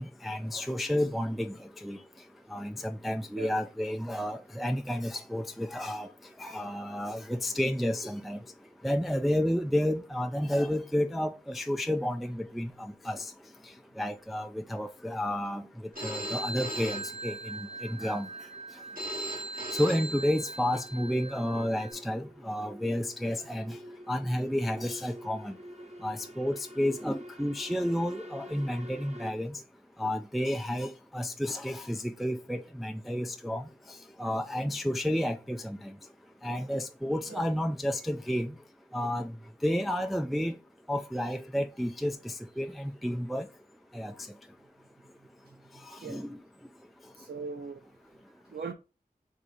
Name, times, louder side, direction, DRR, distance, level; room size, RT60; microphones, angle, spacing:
voice 1, 0.0-1.6 1.8-2.0 2.5-6.1 6.4-8.4 8.8-13.3 14.0-15.7 16.0-18.3 19.7-23.8 24.1-25.5 26.0-29.6 30.0-33.6 34.2-35.8 36.4-38.5 38.9-39.3 39.6-40.5 40.9-43.5 43.9-44.1 45.9-46.3, equal, ahead, 0.3 m, -31 dB
Telephone, 16.0-21.9, right 1 dB, 65° right, 1.9 m, -38 dB
sound 1, 18.8-29.3, equal, 45° right, 1.0 m, -48 dB
voice 2, 47.1-47.8 48.5-48.7, right 4 dB, 85° right, 0.4 m, -39 dB
3.9 x 2.8 x 4.8 m
wide cardioid pair, 45°, 16 cm